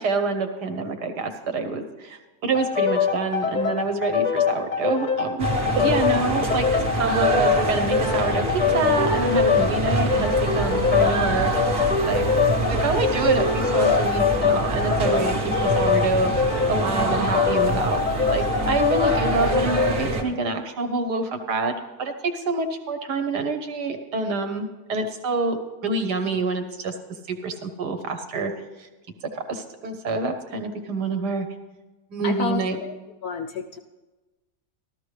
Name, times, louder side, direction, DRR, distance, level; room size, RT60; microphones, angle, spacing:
voice 1, 0.0-5.5 5.8-12.2 12.7-25.6 25.8-26.9 27.3-28.5 28.8-28.9 29.3-31.5 32.1-32.8, right 3 dB, 65° right, 7 dB, 1.4 m, -27 dB
sound 1, 2.5-20.0, left 6 dB, 45° left, 0.6 m, -24 dB
sound 2, 5.4-20.2, right 2 dB, 35° right, 1.1 m, -26 dB
voice 2, 32.2-32.9 33.2-33.8, left 7 dB, 70° left, 6 dB, 0.9 m, -30 dB
13.5 x 13.0 x 3.2 m, 1.2 s
omnidirectional pair, 2.0 m